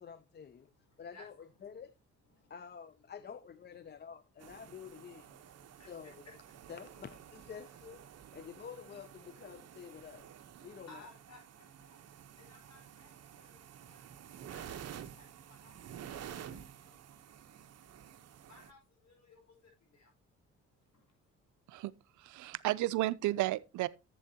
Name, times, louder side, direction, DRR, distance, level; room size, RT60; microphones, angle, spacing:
voice 1, 0.0-0.7 1.0-1.3 1.6-1.9 2.5-5.4 5.9-6.1 6.7-8.0 8.3-10.3 10.6-10.9, left 7 dB, 35° left, 0.5 m, -49 dB
voice 2, 0.5-2.0 2.2-2.7 3.2-6.9 7.5-7.8 10.8-21.8 22.4-22.6, left 2 dB, 60° left, 4.9 m, -63 dB
sound 1, 4.4-18.7, right 9 dB, 55° right, 0.9 m, -51 dB
voice 3, 22.2-23.9, right 16 dB, 80° right, 0.5 m, -32 dB
11.5 x 7.6 x 2.8 m
cardioid pair, 90°, 30 cm